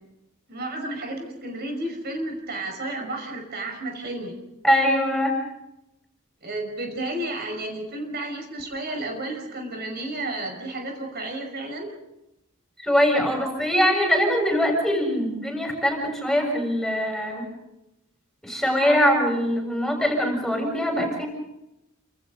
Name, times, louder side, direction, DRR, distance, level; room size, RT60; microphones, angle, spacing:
voice 1, 0.5-4.4 6.4-11.9, right 2 dB, 50° right, 3 dB, 5.6 m, -32 dB
voice 2, 4.6-5.4 12.8-17.5 18.4-21.3, equal, ahead, 1 dB, 7.1 m, -22 dB
30.0 x 27.5 x 4.0 m, 0.88 s
head